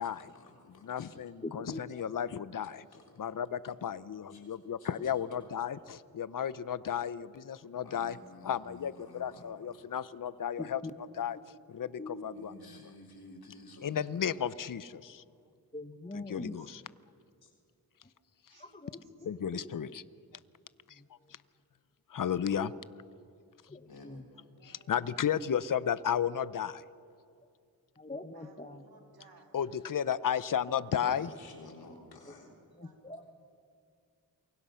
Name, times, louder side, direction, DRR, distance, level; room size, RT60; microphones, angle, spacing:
voice 1, 0.0-1.1 2.6-3.1 3.7-3.8 4.3-5.5 7.7-10.1 12.3-14.0 17.4-17.5 23.9-24.1 31.0-32.5, left 2 dB, 85° left, 1 dB, 3.5 m, -53 dB
voice 2, 0.8-2.9 3.2-8.2 8.4-10.8 11.2-11.4 11.7-12.7 13.8-15.2 16.1-16.8 19.2-20.0 22.1-22.7 24.6-26.8 29.5-31.3, left 8 dB, 60° left, 16 dB, 0.8 m, -33 dB
voice 3, 1.4-2.3 10.6-10.9 12.0-12.3 15.7-16.7 18.6-19.7 21.0-21.1 22.5-22.7 23.7-24.2 28.0-28.9 32.8-33.2, left 2 dB, 20° left, 9 dB, 1.4 m, -43 dB
voice 4, 16.2-17.3 18.5-18.9 24.3-24.9 28.3-29.6 32.5-33.0, right 4 dB, 85° right, 2 dB, 3.1 m, -62 dB
28.5 x 23.5 x 5.7 m, 2.4 s
cardioid pair, 60°, 36 cm